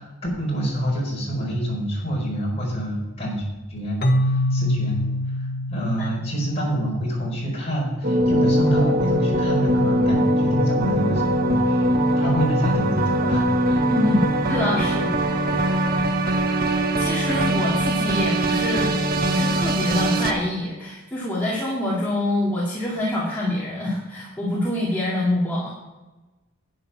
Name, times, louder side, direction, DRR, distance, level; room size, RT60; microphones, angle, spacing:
voice 1, 0.0-3.4 3.7-5.0 5.3-11.9 12.1-13.8 14.3-14.4 15.9-16.1, right 1 dB, 30° left, -3 dB, 4.7 m, -27 dB
Keyboard (musical), 4.0-7.7, left 1 dB, 45° left, 1.0 m, -25 dB
sound 1, 8.0-20.3, right 1 dB, 45° right, 1.0 m, -21 dB
voice 2, 13.9-15.6 17.0-19.0 19.2-25.7, left 1 dB, 10° left, -7 dB, 2.1 m, -26 dB
11.0 x 9.5 x 5.9 m, 1.1 s
head